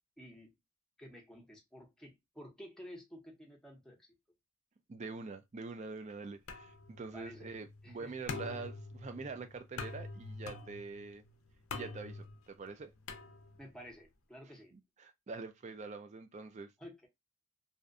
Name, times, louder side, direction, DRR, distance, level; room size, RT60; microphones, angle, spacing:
voice 1, 0.2-0.5 1.0-4.1 7.1-7.5 7.8-8.1 13.6-14.7 16.8-17.1, equal, 5° left, 0.6 m, -52 dB
voice 2, 4.9-11.2 11.7-12.9 14.7-16.7, right 4 dB, 35° right, 0.4 m, -45 dB
sound 1, 6.5-13.8, left 4 dB, 85° left, 0.5 m, -46 dB
2.6 x 2.1 x 2.4 m
head